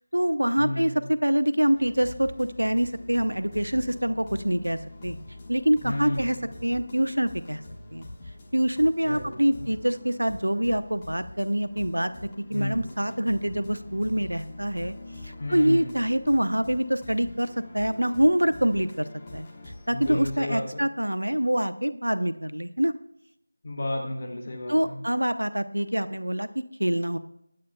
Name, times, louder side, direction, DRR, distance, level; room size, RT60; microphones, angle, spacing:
voice 1, 0.0-5.2 5.5-7.6 7.9-8.1 8.5-12.1 12.5-15.0 15.2-19.1 19.3-19.5 19.9-22.9 24.7-27.2, equal, 80° right, 11 dB, 0.8 m, -25 dB
voice 2, 0.6-1.1 5.8-6.5 9.0-9.6 12.5-12.8 15.4-16.0 19.9-20.8 23.6-25.0, left 1 dB, 30° left, -1 dB, 2.2 m, -32 dB
sound 1, 1.7-20.4, left 2 dB, 15° left, 1.3 m, -44 dB
20.0 x 8.8 x 2.2 m, 0.76 s
figure-of-eight pair, 170°, 0 cm